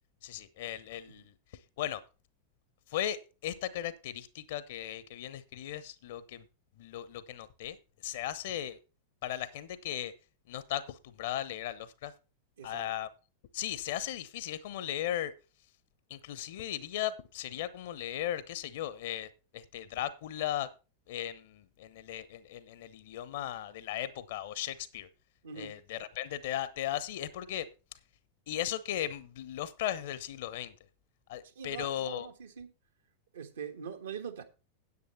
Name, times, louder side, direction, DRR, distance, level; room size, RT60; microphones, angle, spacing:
voice 1, 0.2-1.3 1.8-2.0 2.9-6.4 6.8-7.8 8.0-8.8 9.2-10.1 10.5-12.1 12.6-13.1 13.5-15.3 16.1-20.7 21.1-25.1 25.6-27.7 28.5-30.7 31.3-32.3, left 12 dB, 55° left, 0.9 m, -37 dB
voice 2, 12.6-12.9 25.4-25.8 31.4-32.7 33.3-34.4, right 7 dB, 65° right, 1.5 m, -43 dB
9.7 x 8.3 x 4.4 m
figure-of-eight pair, 90°, 0 cm